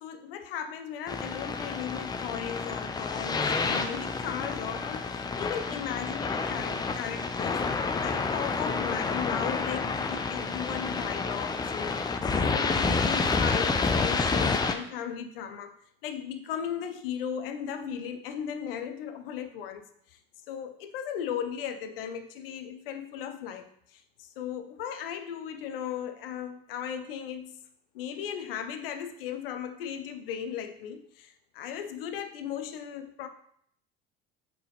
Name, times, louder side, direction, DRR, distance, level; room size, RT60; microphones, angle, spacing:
voice 1, 0.0-7.7 8.0-15.7 16.0-20.2 20.5-27.6 27.9-33.3, left 8 dB, 65° left, 8 dB, 0.7 m, -37 dB
sound 1, 1.1-14.8, left 4 dB, 15° left, 0.5 m, -29 dB
7.7 x 3.7 x 3.4 m, 0.66 s
figure-of-eight pair, 65°, 31 cm